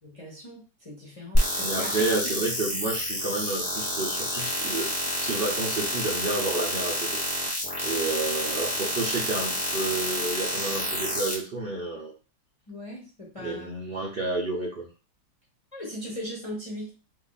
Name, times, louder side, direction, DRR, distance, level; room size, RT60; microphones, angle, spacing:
voice 1, 0.0-2.3 12.7-13.8 15.7-16.9, equal, 30° left, -3 dB, 0.6 m, -39 dB
sound 1, 1.3-11.3, equal, 15° left, 1.1 m, -29 dB
voice 2, 1.6-4.9 5.2-7.2 7.8-12.1 13.4-14.9, right 2 dB, 80° right, -3 dB, 0.5 m, -30 dB
2.8 x 2.6 x 3.9 m, 0.34 s
omnidirectional pair, 2.0 m